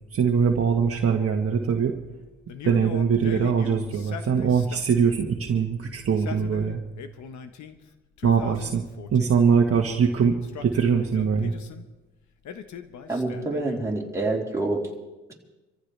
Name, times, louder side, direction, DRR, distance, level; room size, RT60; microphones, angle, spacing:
voice 1, 0.0-2.0 2.6-6.8 8.2-8.8 9.1-11.5, right 6 dB, 50° right, 2 dB, 1.4 m, -22 dB
Male speech man speaking, 2.5-5.0 6.0-7.8 8.2-9.5 10.3-11.8 12.4-14.0, left 7 dB, 70° left, 1.2 m, -39 dB
voice 2, 13.1-14.9, right 2 dB, 10° right, -4 dB, 3.6 m, -27 dB
26.0 x 14.5 x 3.4 m, 1.1 s
cardioid pair, 90°, 30 cm